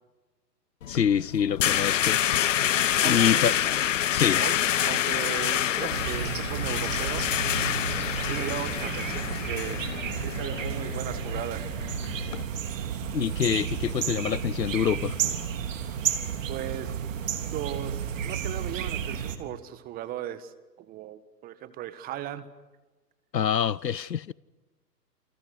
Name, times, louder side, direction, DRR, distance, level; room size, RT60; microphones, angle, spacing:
sound 1, 0.8-12.4, left 11 dB, 50° left, 1.3 m, -27 dB
voice 1, 0.9-2.2 3.0-3.6 4.1-4.4 13.1-15.2 23.3-24.3, left 8 dB, 80° left, 0.9 m, -26 dB
voice 2, 3.0-3.5 4.3-4.5 4.9-7.2 8.2-9.9 10.1-11.7 16.5-16.9 17.5-20.5 20.8-22.5, right 11 dB, 20° right, 1.6 m, -37 dB
sound 2, 5.9-19.4, right 8 dB, 50° right, 3.4 m, -32 dB
29.5 x 29.5 x 6.6 m
figure-of-eight pair, 130°, 49 cm